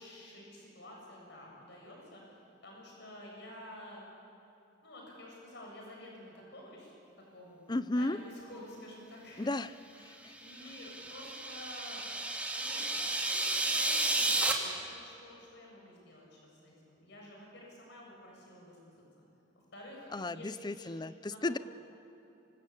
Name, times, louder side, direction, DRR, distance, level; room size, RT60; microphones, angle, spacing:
voice 1, 0.0-2.2 2.6-4.0 4.8-6.9 7.3-9.5 10.4-12.0 12.5-19.0 19.7-20.9 21.3-21.6, left 1 dB, 60° left, -1 dB, 7.3 m, -50 dB
voice 2, 7.7-8.2 9.4-9.7 10.0-10.3 20.1-21.6, left 2 dB, 20° left, 14 dB, 0.5 m, -34 dB
sound 1, 10.4-14.5, right 2 dB, 5° right, 2.7 m, -32 dB
26.5 x 24.5 x 8.6 m, 2.9 s
head